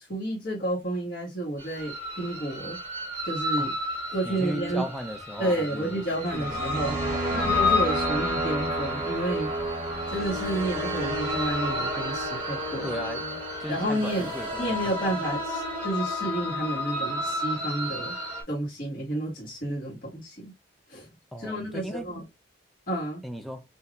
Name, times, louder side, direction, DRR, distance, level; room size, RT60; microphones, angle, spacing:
voice 1, 0.0-2.8 3.2-3.7 4.1-4.8 5.4-7.0 7.3-9.5 10.1-13.0 13.7-14.3 14.6-18.1 18.5-20.5 20.9-21.1 21.4-22.2 22.9-23.2, right 1 dB, 50° left, 1.6 m, -30 dB
sound 1, 1.6-18.4, left 1 dB, 30° right, 2.6 m, -30 dB
voice 2, 4.2-6.0 6.3-7.5 12.8-14.5 21.3-22.1 23.2-23.6, equal, ahead, 0.6 m, -36 dB
5.5 x 2.8 x 2.4 m
head